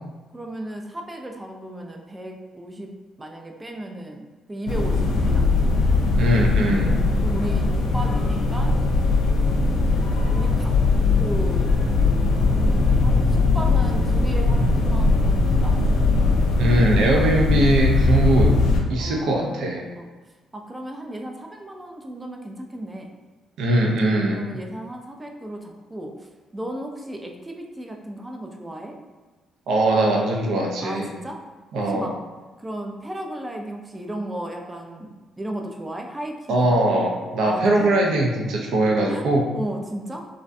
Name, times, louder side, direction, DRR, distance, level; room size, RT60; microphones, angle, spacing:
voice 1, 0.3-5.8 7.2-8.8 10.3-10.7 11.2-11.8 12.5-15.8 19.0-19.6 20.0-20.1 20.5-23.1 24.3-29.0 30.8-31.4 31.8-32.2 32.6-36.8 37.4-37.9 39.1-39.2 39.5-40.3, right 1 dB, 15° right, 2 dB, 0.3 m, -35 dB
sound 1, 4.7-18.8, left 3 dB, 85° left, 0.3 m, -20 dB
voice 2, 6.2-7.0 16.6-18.6 18.9-19.8 23.6-24.5 29.7-31.1 31.7-32.1 36.5-39.5, right 1 dB, 80° right, 0 dB, 0.4 m, -21 dB
2.4 x 2.1 x 2.5 m, 1.3 s
cardioid pair, 90°, 0 cm